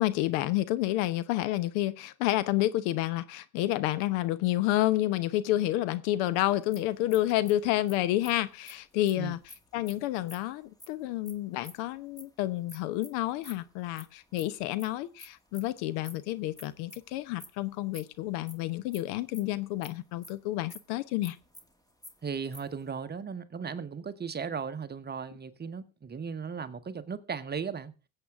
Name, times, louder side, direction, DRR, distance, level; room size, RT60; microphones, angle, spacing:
voice 1, 0.0-9.4 9.7-21.4, left 15 dB, 65° left, 0.9 m, -29 dB
sound 1, 6.5-12.2 12.7-19.9 20.2-20.3 20.6-20.8 21.0-22.8, left 1 dB, 10° left, 1.8 m, -50 dB
voice 2, 22.2-27.9, right 6 dB, 25° right, 1.1 m, -36 dB
21.0 x 7.9 x 3.6 m
hypercardioid pair, 75°, 42 cm